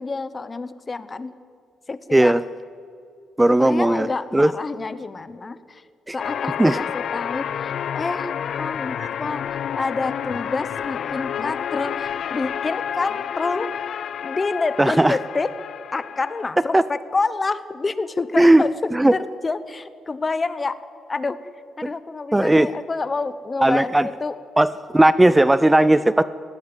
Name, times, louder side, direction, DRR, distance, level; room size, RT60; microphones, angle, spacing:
voice 1, 0.0-1.3 1.9-2.4 3.6-5.8 6.1-8.3 8.6-13.7 14.2-15.5 15.9-18.7 19.1-20.8 21.1-21.4 21.8-24.3, left 3 dB, 30° left, 14 dB, 1.0 m, -28 dB
voice 2, 2.1-2.4 3.4-4.1 4.3-4.5 6.1-6.2 6.6-6.8 14.8-15.2 16.7-16.8 18.4-18.7 18.9-19.1 22.3-22.7 23.6-24.1 24.6-26.2, right 1 dB, 10° right, 15 dB, 0.5 m, -16 dB
sound 1, 6.2-16.5, left 8 dB, 60° left, 0.5 m, -29 dB
20.0 x 16.5 x 8.0 m, 2.3 s
cardioid pair, 90°, 0 cm